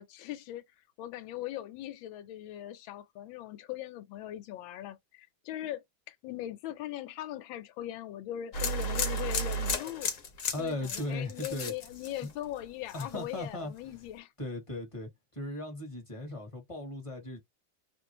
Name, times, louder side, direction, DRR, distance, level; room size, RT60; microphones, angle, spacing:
voice 1, 0.0-10.1 10.6-14.3, left 13 dB, 85° left, 1.4 m, -40 dB
sound 1, 8.5-12.6 12.9-13.4, left 1 dB, 55° left, 1.0 m, -33 dB
voice 2, 10.5-11.7 12.2-12.3 12.9-14.0 14.4-17.4, left 2 dB, 20° left, 1.0 m, -37 dB
3.0 x 2.6 x 2.8 m
omnidirectional pair, 2.1 m